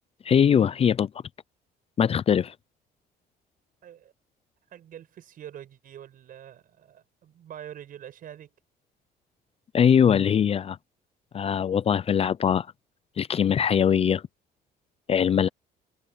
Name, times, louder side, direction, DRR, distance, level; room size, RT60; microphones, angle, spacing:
voice 1, 0.2-1.1 2.0-2.5 9.7-10.8 11.3-12.7 13.2-14.2 15.1-15.5, left 8 dB, 35° left, 0.5 m, -21 dB
voice 2, 3.8-4.1 4.7-8.5, right 10 dB, 55° right, 5.6 m, -45 dB
cardioid pair, 110°, 17 cm